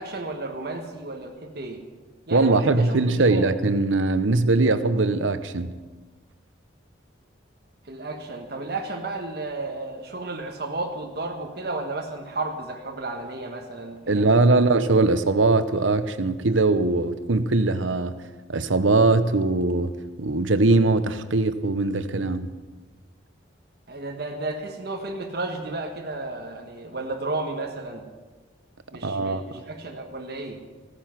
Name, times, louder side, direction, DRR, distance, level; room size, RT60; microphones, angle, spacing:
voice 1, 0.0-1.8 2.3-3.5 7.9-14.7 23.9-28.0 28.9-30.6, right 2 dB, 55° right, 1.5 m, -33 dB
voice 2, 2.3-5.7 14.1-18.2 18.5-22.5 29.0-29.4, right 3 dB, 85° right, 0.9 m, -21 dB
15.0 x 14.5 x 5.9 m
head